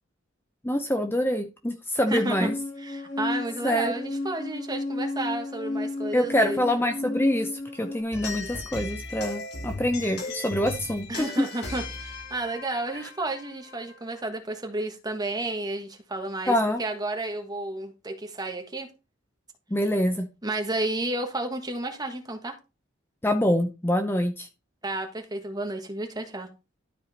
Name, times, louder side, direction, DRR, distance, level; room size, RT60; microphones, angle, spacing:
voice 1, 0.6-2.5 3.6-3.9 6.1-11.2 16.5-16.8 19.7-20.3 23.2-24.5, equal, 10° left, 5 dB, 0.8 m, -25 dB
sound 1, 2.1-8.0, left 2 dB, 35° left, 2.5 m, -33 dB
voice 2, 2.1-2.5 2.8-6.7 11.1-18.9 20.4-22.5 24.8-26.5, right 2 dB, 20° right, 5 dB, 1.5 m, -32 dB
sound 2, 8.1-13.9, left 3 dB, 55° left, 2.0 m, -37 dB
12.5 x 4.9 x 4.2 m, 0.29 s
head